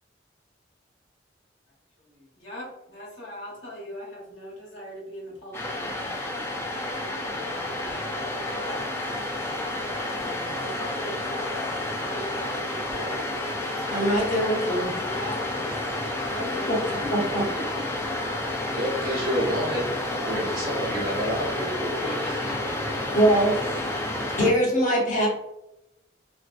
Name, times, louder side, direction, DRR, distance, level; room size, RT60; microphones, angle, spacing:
voice 1, 2.0-6.2 6.4-14.3 15.0-15.8 16.2-16.9 17.2-17.3 17.8-17.9 22.0-23.2, equal, 80° left, -4 dB, 1.0 m, -41 dB
sound 1, 5.5-24.5, left 1 dB, 15° left, 0.3 m, -30 dB
voice 2, 13.9-14.9 16.7-16.8 17.3-17.4 23.1-23.5 24.4-25.3, equal, 45° left, -4 dB, 0.8 m, -22 dB
voice 3, 18.7-19.9 20.2-22.5, equal, 50° right, -5 dB, 0.9 m, -29 dB
2.6 x 2.0 x 2.4 m, 0.87 s
head